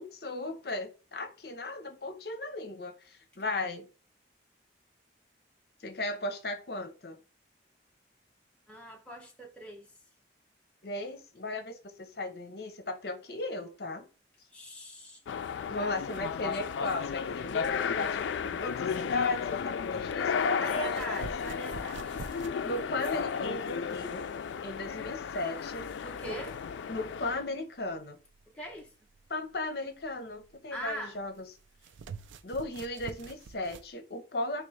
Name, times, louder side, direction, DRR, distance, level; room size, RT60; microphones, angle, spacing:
voice 1, 0.0-3.9 5.8-7.2 10.8-14.1 15.7-21.2 22.6-24.3 24.6-25.8 26.2-26.4 26.9-28.2 29.3-31.5 32.4-34.7, left 2 dB, 60° left, 0.7 m, -36 dB
voice 2, 8.7-9.9 14.5-15.2 15.8-16.0 20.6-22.2 26.0-26.6 28.5-28.9 30.7-31.2, right 1 dB, 5° left, 0.7 m, -41 dB
sound 1, 15.3-27.5, left 6 dB, 80° left, 0.3 m, -33 dB
sound 2, 20.9-33.9, right 4 dB, 90° right, 0.4 m, -48 dB
3.7 x 2.9 x 3.1 m
head